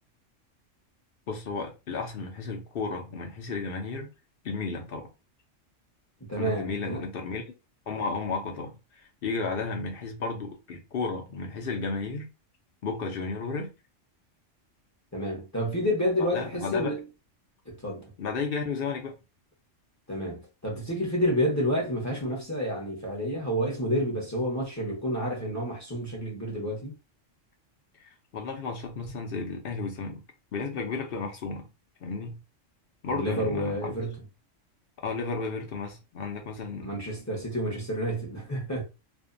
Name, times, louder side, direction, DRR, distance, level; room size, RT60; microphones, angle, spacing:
voice 1, 1.3-4.1 4.4-5.1 6.4-7.4 7.9-12.3 12.8-13.7 16.2-16.9 18.2-19.1 28.3-30.2 30.5-31.7 32.0-32.4 33.0-33.9 35.0-36.9, left 4 dB, 55° left, 0.7 m, -33 dB
voice 2, 6.2-7.0 15.1-17.0 17.7-18.1 20.1-26.9 33.1-34.2 36.8-38.8, equal, 15° left, 0.8 m, -29 dB
2.5 x 2.2 x 2.5 m
omnidirectional pair, 1.3 m